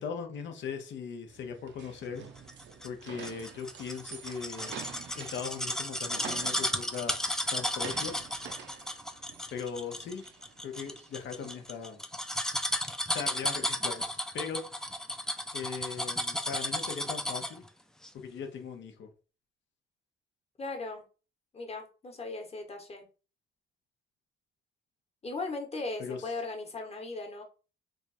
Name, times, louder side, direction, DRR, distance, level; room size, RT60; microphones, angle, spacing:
voice 1, 0.0-2.2 2.8-4.7 5.1-7.1 7.5-8.1 9.5-10.2 10.6-12.0 13.1-14.6 15.5-17.6 18.1-19.1 26.0-26.2, left 6 dB, 65° left, 4 dB, 0.8 m, -39 dB
sound 1, 1.3-11.7, right 7 dB, 65° right, 0.6 m, -48 dB
sound 2, 2.5-17.7 18.0-18.1, left 1 dB, 5° left, 0.4 m, -34 dB
voice 2, 20.6-21.0 21.5-23.1 25.2-27.4, left 3 dB, 30° left, 3 dB, 1.2 m, -38 dB
3.2 x 2.4 x 4.1 m, 0.34 s
cardioid pair, 90°, 20 cm